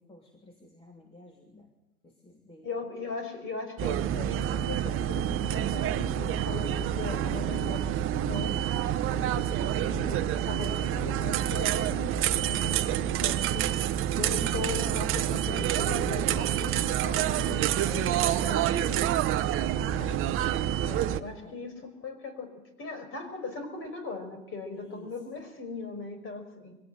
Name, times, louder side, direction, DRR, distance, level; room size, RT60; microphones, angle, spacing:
voice 1, 0.0-1.7 2.0-2.7 9.1-9.4 11.4-12.0 16.0-17.2 17.9-18.8 19.5-20.2 21.4-21.7 24.7-25.3, left 1 dB, 15° left, 1 dB, 3.0 m, -48 dB
voice 2, 2.6-8.6 9.1-17.8 18.2-19.2 20.0-20.3 20.8-26.8, left 4 dB, 30° left, 9 dB, 5.5 m, -39 dB
sound 1, 3.8-21.2, right 11 dB, 30° right, 1.0 m, -28 dB
23.5 x 17.0 x 7.8 m, 0.93 s
hypercardioid pair, 105°, 43 cm